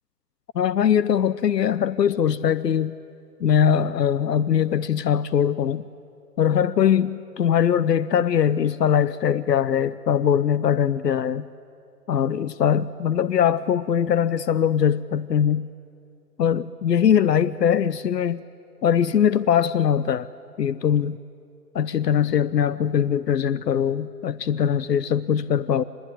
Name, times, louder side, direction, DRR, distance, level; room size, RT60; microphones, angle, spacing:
voice 1, 0.5-3.0 3.4-5.9 6.4-11.5 12.1-15.7 16.4-18.4 18.8-20.3 20.6-21.2 21.7-25.8, left 8 dB, 85° left, 17 dB, 0.7 m, -21 dB
25.0 x 20.5 x 9.9 m, 2.5 s
hypercardioid pair, 140°, 48 cm